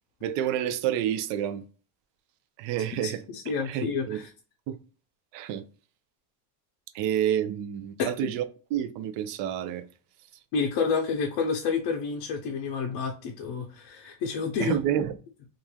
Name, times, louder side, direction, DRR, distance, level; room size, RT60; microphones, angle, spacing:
voice 1, 0.2-1.6 2.6-3.2 3.7-4.2 4.7-4.8 5.3-5.6 6.9-8.4 8.7-9.8 14.6-15.1, right 10 dB, 60° right, 0.6 m, -28 dB
voice 2, 3.0-4.3 8.0-8.1 10.5-14.8, left 5 dB, 50° left, 0.6 m, -29 dB
3.0 x 2.5 x 2.2 m
cardioid pair, 145°, 49 cm